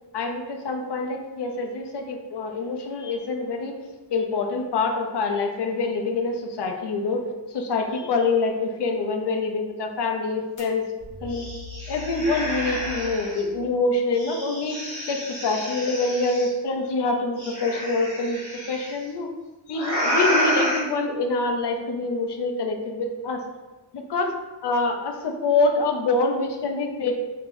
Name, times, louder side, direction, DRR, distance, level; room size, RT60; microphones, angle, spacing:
voice 1, 0.1-3.7 4.1-7.2 7.5-10.9 11.2-11.5 11.9-14.8 15.1-18.4 18.7-19.3 19.7-23.4 23.9-24.3 24.6-27.2, left 3 dB, 80° left, 3 dB, 0.6 m, -25 dB
sound 1, 10.6-10.7 11.0-13.4 14.1-16.5 17.4-18.9 19.7-20.8, equal, 45° left, 1.5 m, -29 dB
4.6 x 2.9 x 2.6 m, 1.2 s
wide cardioid pair, 130°, 41 cm